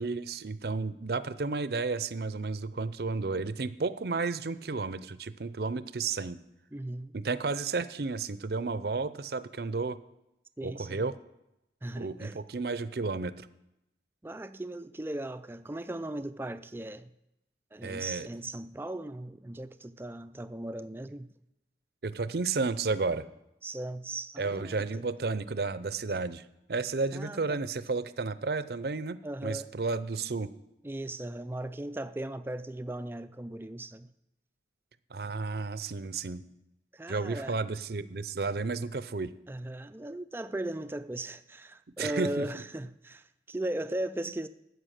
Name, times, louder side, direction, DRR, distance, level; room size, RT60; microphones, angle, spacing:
voice 1, 0.0-6.4 7.1-10.0 10.6-11.1 12.0-13.5 17.8-18.3 22.0-23.3 24.4-30.5 35.1-36.4 37.1-39.3 42.0-42.4, right 4 dB, 60° right, 0.6 m, -32 dB
voice 2, 6.7-7.1 10.6-11.1 11.8-12.4 14.2-17.1 17.7-21.3 23.6-25.0 27.1-27.6 29.2-29.7 30.8-34.1 36.9-37.6 39.5-44.5, right 1 dB, 10° right, 0.3 m, -37 dB
13.0 x 8.0 x 6.5 m
head